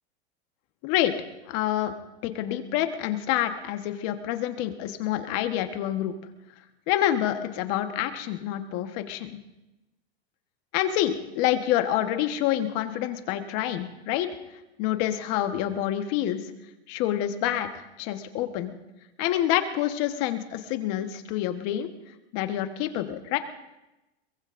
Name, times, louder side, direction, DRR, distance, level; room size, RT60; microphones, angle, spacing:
voice 1, 0.8-1.1 1.5-1.9 2.2-6.1 6.9-9.4 10.7-14.3 14.8-16.4 16.9-18.7 19.2-21.9 22.3-23.4, left 12 dB, 45° left, 7 dB, 1.3 m, -27 dB
22.5 x 21.5 x 2.6 m, 0.99 s
supercardioid pair, 140°, 34 cm